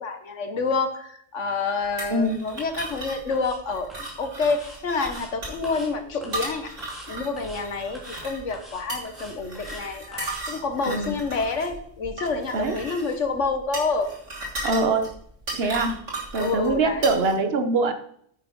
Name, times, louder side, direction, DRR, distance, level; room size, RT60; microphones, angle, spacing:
voice 1, 0.0-3.9 4.2-6.7 7.1-14.1 16.4-17.1, left 4 dB, 75° left, 7 dB, 1.7 m, -28 dB
knife on plate, 2.0-17.3, right 2 dB, 80° right, 3.4 m, -36 dB
sound 1, 2.7-3.0 3.3-3.6 3.9-4.2 4.5-5.3 5.6-5.9 6.2-6.5 6.8-7.1 7.4-7.6 7.9-8.2 8.5-9.8 10.1-10.4, equal, ahead, 2.9 m, -44 dB
voice 2, 10.9-11.2 12.5-12.8 14.6-15.0 15.5-16.0 16.3-17.9, right 3 dB, 55° right, 7 dB, 1.3 m, -23 dB
9.7 x 7.7 x 5.4 m, 0.66 s
omnidirectional pair, 1.3 m